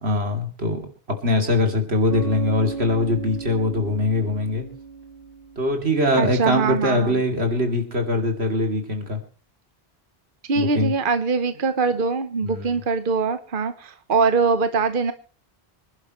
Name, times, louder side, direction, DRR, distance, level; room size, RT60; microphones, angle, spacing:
voice 1, 0.0-0.8 1.1-4.7 5.6-9.2 10.5-10.9 12.4-12.7, left 1 dB, 90° right, 4 dB, 3.2 m, -22 dB
Bass guitar, 2.1-5.9, right 5 dB, 35° right, 7.9 m, -34 dB
voice 2, 6.2-7.2 10.5-15.1, right 4 dB, 55° right, 10 dB, 1.1 m, -22 dB
26.0 x 11.0 x 3.1 m, 0.38 s
omnidirectional pair, 1.1 m